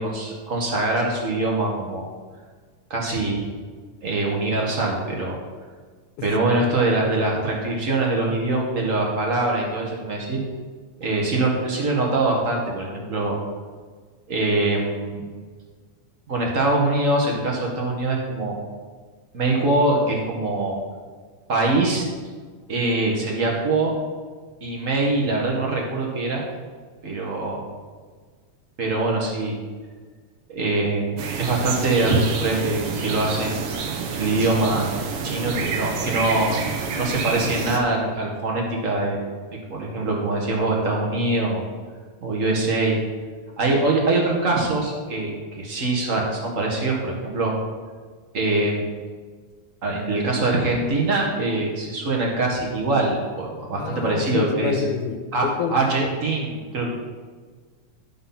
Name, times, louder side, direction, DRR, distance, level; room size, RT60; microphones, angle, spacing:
voice 1, 0.0-2.1 2.9-3.5 4.0-5.4 6.2-10.4 11.0-13.4 14.3-15.2 16.3-18.6 19.3-20.8 21.5-22.0 22.7-23.9 24.6-26.4 27.0-27.6 28.8-29.6 30.5-34.9 35.2-36.7 36.9-39.2 39.5-41.7 42.2-43.0 43.6-47.5 48.3-48.8 49.8-54.8 55.3-55.5 55.7-56.9, right 2 dB, 40° right, -1 dB, 1.2 m, -23 dB
sound 1, 31.2-37.8, right 5 dB, 65° right, 1.6 m, -29 dB
voice 2, 53.8-56.1, left 7 dB, 85° left, 8 dB, 2.2 m, -27 dB
12.0 x 4.4 x 5.8 m, 1.5 s
omnidirectional pair, 3.5 m